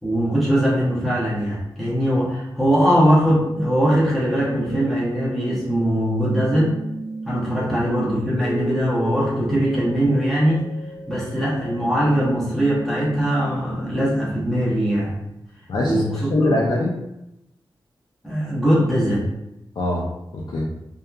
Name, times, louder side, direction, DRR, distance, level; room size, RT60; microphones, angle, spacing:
voice 1, 0.0-6.8 7.3-10.7 11.1-15.1 15.8-16.1 16.4-16.6 18.2-19.3, equal, ahead, -9 dB, 0.7 m, -21 dB
sound 1, 2.8-14.8, right 2 dB, 55° right, 0.4 m, -34 dB
voice 2, 15.7-16.9 19.8-20.1 20.3-20.7, left 2 dB, 60° left, -4 dB, 0.4 m, -23 dB
2.7 x 2.3 x 2.3 m, 0.88 s
wide cardioid pair, 90°, 8 cm